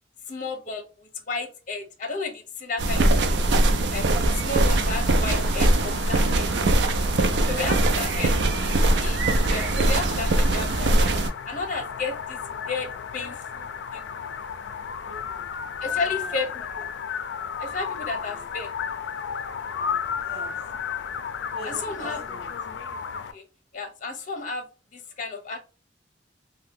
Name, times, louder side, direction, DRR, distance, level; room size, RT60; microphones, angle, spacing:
voice 1, 0.3-3.6 3.9-4.0 4.3-6.5 7.5-8.4 8.8-11.1 11.5-14.0 15.8-16.9 17.6-18.7 21.6-22.2 23.3-23.4 23.7-24.7 24.9-25.6, left 3 dB, 45° left, 5 dB, 0.7 m, -33 dB
sound 1, 2.8-11.3, right 2 dB, 75° right, 0.4 m, -21 dB
sound 2, 4.5-23.3, left 7 dB, 80° left, 0.4 m, -34 dB
voice 2, 7.4-8.4 15.0-15.5 15.8-16.4 18.3-18.5 19.6-20.6 21.5-22.5, equal, 30° right, -3 dB, 1.0 m, -44 dB
2.6 x 2.1 x 3.6 m, 0.31 s
head